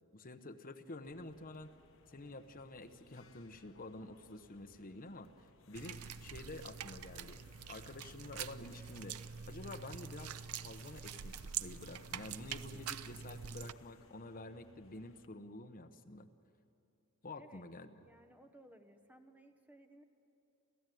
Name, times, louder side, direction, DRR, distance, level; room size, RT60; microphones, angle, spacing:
voice 1, 0.1-1.7 2.1-7.4 7.7-9.2 9.5-16.3 17.2-18.0, left 2 dB, 40° left, 8 dB, 0.9 m, -49 dB
sound 1, 1.0-15.3, left 3 dB, 60° left, 1.2 m, -64 dB
sound 2, 5.8-13.7, right 8 dB, 80° right, 0.6 m, -45 dB
voice 2, 18.0-20.0, right 1 dB, 10° right, 6 dB, 1.2 m, -60 dB
29.0 x 14.5 x 9.3 m, 2.7 s
head